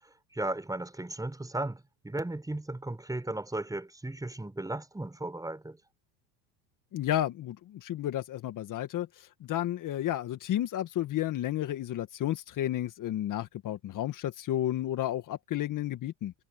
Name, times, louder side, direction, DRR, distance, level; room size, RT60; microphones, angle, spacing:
voice 1, 0.0-5.8, right 2 dB, 10° right, 7.3 m, -36 dB
voice 2, 6.9-16.3, left 12 dB, 45° left, 1.9 m, -32 dB
supercardioid pair, 95°, 43 cm